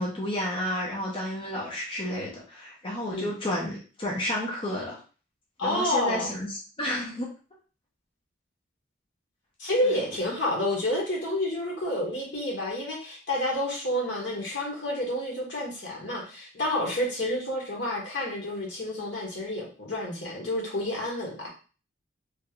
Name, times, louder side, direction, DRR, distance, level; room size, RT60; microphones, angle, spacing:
voice 1, 0.0-5.0 5.6-7.3 9.8-10.0, left 1 dB, 30° left, -3 dB, 0.7 m, -31 dB
voice 2, 5.6-6.3 9.6-21.5, left 1 dB, 80° left, -2 dB, 1.4 m, -29 dB
3.2 x 3.0 x 2.4 m, 0.36 s
head